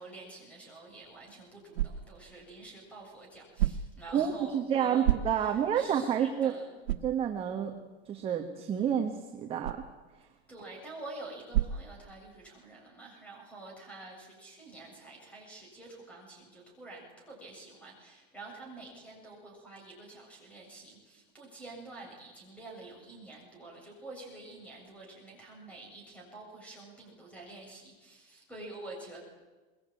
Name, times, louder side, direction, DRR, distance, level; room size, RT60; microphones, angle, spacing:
voice 1, 0.0-6.7 10.5-29.2, right 2 dB, 5° left, 0 dB, 7.6 m, -48 dB
sound 1, 0.9-12.6, right 13 dB, 90° right, 1.5 m, -37 dB
voice 2, 4.1-6.5 7.0-7.7 8.0-9.8 10.2-10.3, right 9 dB, 20° right, 3 dB, 1.4 m, -29 dB
23.0 x 21.5 x 9.1 m, 1.3 s
supercardioid pair, 170°, 31 cm